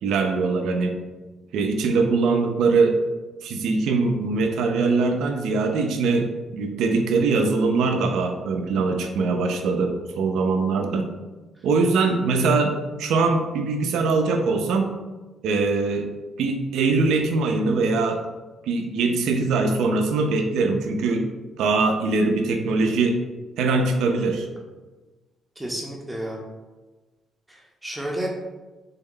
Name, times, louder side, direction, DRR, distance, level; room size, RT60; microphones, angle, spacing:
voice 1, 0.0-0.9 1.5-3.0 3.4-11.1 11.6-14.9 15.4-16.1 16.4-18.2 18.7-21.3 21.6-23.2 23.6-24.5, right 3 dB, 80° right, 5 dB, 0.4 m, -22 dB
voice 2, 25.6-26.4 27.5-28.3, right 1 dB, 15° right, -2 dB, 0.6 m, -31 dB
3.5 x 2.1 x 3.7 m, 1.2 s
cardioid pair, 90°, 0 cm